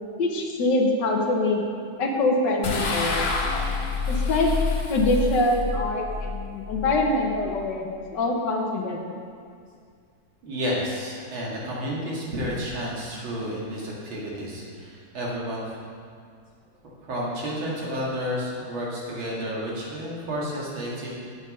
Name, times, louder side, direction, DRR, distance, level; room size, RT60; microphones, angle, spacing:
voice 1, 0.2-1.6 2.0-3.3 4.1-4.5 4.9-9.1 14.0-14.1, left 2 dB, 65° left, 1 dB, 1.6 m, -24 dB
sound 1, 2.6-8.0, left 4 dB, 45° left, 0.8 m, -28 dB
voice 2, 10.4-15.8 17.0-21.1, equal, 85° right, -5 dB, 2.8 m, -31 dB
8.2 x 8.0 x 5.4 m, 2.2 s
omnidirectional pair, 2.1 m